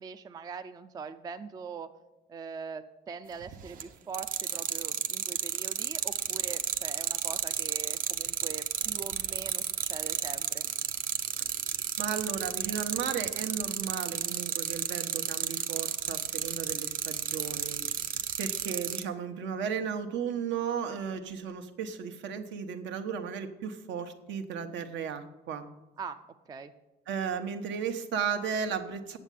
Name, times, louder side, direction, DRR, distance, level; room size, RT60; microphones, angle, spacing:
voice 1, 0.0-1.9 2.3-10.7 26.0-26.7, right 6 dB, 20° right, 10 dB, 0.4 m, -42 dB
sound 1, 3.4-3.8 4.1-19.0, right 8 dB, 45° right, 0.7 m, -31 dB
voice 2, 12.0-17.8 18.4-25.7 27.1-29.2, right 7 dB, 70° right, 7 dB, 1.1 m, -35 dB
8.9 x 7.3 x 8.4 m, 1.0 s
cardioid pair, 180°, 19 cm